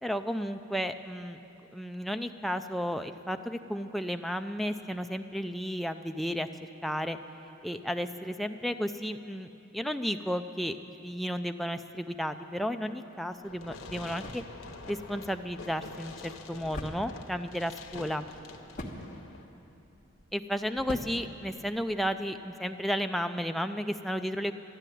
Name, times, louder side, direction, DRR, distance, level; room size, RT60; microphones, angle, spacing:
voice 1, 0.0-1.4 1.7-7.2 7.6-14.4 14.9-18.3 20.3-24.5, equal, ahead, 6 dB, 0.4 m, -33 dB
Fireworks, 13.4-19.4, left 3 dB, 85° left, 1.0 m, -46 dB
sound 1, 13.4-22.2, left 1 dB, 40° left, 1.3 m, -46 dB
11.5 x 11.5 x 9.1 m, 2.9 s
head